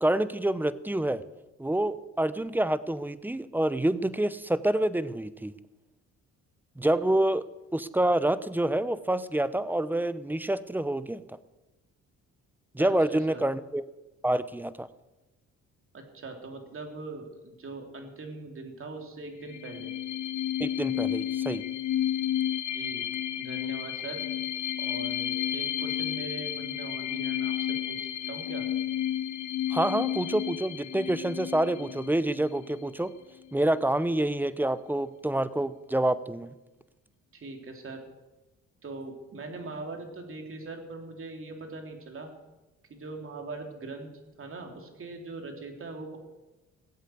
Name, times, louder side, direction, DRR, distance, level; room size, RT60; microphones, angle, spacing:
voice 1, 0.0-1.2 1.6-5.5 6.8-7.4 7.7-11.2 12.7-13.8 14.2-14.9 20.6-21.6 29.7-33.1 33.5-36.5, right 1 dB, 5° right, 15 dB, 0.7 m, -27 dB
voice 2, 12.8-13.4 15.9-19.9 22.7-23.1 23.3-24.3 24.8-28.7 37.3-38.0 38.8-42.3 42.9-44.1 44.4-46.2, right 3 dB, 45° right, 3 dB, 3.5 m, -41 dB
sound 1, 19.4-32.8, left 11 dB, 75° left, 1.1 m, -32 dB
17.0 x 8.3 x 7.9 m, 1.1 s
cardioid pair, 90°, 30 cm